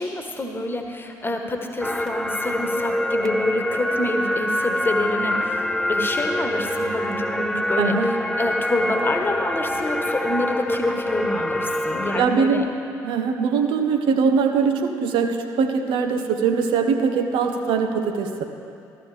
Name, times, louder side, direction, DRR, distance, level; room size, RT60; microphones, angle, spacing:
voice 1, 0.0-5.6 5.9-12.6, left 2 dB, 25° left, 4 dB, 1.3 m, -27 dB
sound 1, 1.8-12.3, left 1 dB, 5° left, 0.6 m, -25 dB
voice 2, 7.8-8.1 12.2-12.7 13.0-18.4, right 5 dB, 65° right, 6 dB, 1.0 m, -21 dB
14.0 x 13.5 x 3.4 m, 2.5 s
hypercardioid pair, 50°, 9 cm